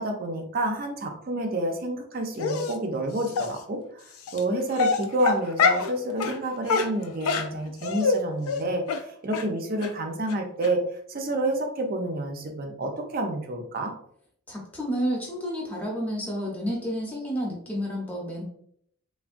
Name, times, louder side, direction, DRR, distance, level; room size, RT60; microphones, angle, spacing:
voice 1, 0.0-10.8 11.1-13.9, right 1 dB, 40° right, 4 dB, 0.4 m, -29 dB
Dog, 2.4-2.7 3.3-3.5 4.3-4.4 4.7-5.9 6.2-6.4 6.7-8.2 8.5-8.6 8.9-9.0 9.3-9.4 9.8-9.9 10.3-10.4 10.6-10.7, left 4 dB, 80° left, 0.4 m, -24 dB
voice 2, 14.5-18.4, equal, 5° left, -4 dB, 0.7 m, -30 dB
3.3 x 2.2 x 2.4 m, 0.66 s
head